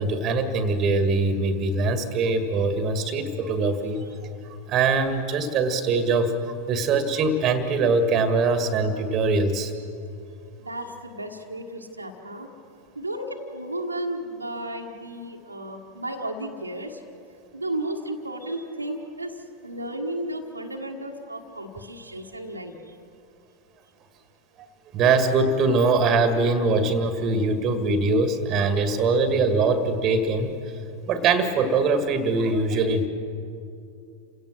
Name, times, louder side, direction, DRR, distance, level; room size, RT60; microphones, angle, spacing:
voice 1, 0.0-4.0 4.7-6.3 6.7-9.7 24.9-30.5 31.1-33.1, right 3 dB, 30° right, 9 dB, 1.9 m, -22 dB
voice 2, 10.6-12.5 12.9-17.0 17.5-19.4 19.6-22.7, right 1 dB, 85° right, 1 dB, 1.6 m, -33 dB
29.0 x 17.0 x 6.3 m, 2.6 s
figure-of-eight pair, 90°, 0 cm